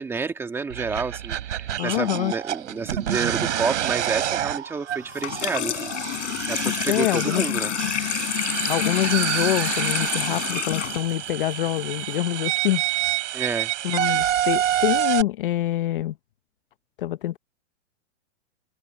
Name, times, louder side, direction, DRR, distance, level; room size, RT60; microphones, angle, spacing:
voice 1, 0.0-5.9 6.5-7.7 13.3-13.7, right 4 dB, 5° right, 1.8 m, -29 dB
sound 1, 0.7-15.2, right 12 dB, 80° right, 4.4 m, -28 dB
voice 2, 1.8-2.3 6.9-7.4 8.7-12.8 13.8-16.1 17.0-17.4, left 14 dB, 45° left, 0.8 m, -25 dB
Water tap faucet / Sink (filling or washing), 5.1-12.1, left 11 dB, 75° left, 4.7 m, -29 dB
supercardioid pair, 175°, 36 cm